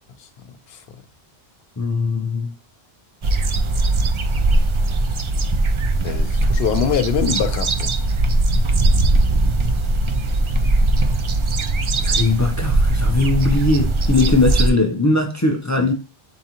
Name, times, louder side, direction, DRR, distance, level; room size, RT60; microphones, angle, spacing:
voice 1, 1.8-2.5 12.0-15.9, left 3 dB, 30° left, 0.3 m, -19 dB
sound 1, 3.2-14.7, right 2 dB, 50° right, 0.3 m, -19 dB
voice 2, 6.0-7.9 15.8-15.9, left 8 dB, 80° left, 0.8 m, -23 dB
3.9 x 3.6 x 2.8 m
omnidirectional pair, 1.0 m